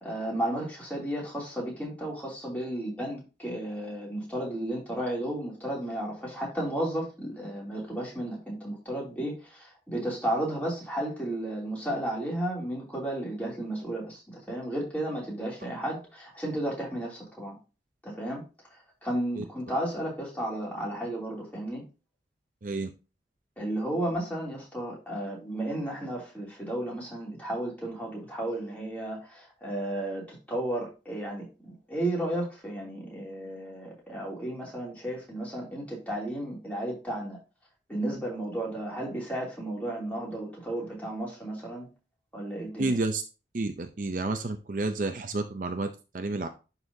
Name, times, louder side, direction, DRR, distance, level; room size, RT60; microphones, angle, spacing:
voice 1, 0.0-17.5 18.0-18.4 19.0-21.8 23.6-31.4 31.9-37.4 37.9-41.9 42.3-42.9, right 1 dB, 10° left, -4 dB, 2.8 m, -33 dB
voice 2, 42.8-43.2 43.5-46.5, right 2 dB, 50° right, 7 dB, 0.6 m, -30 dB
11.5 x 4.1 x 2.7 m, 0.31 s
head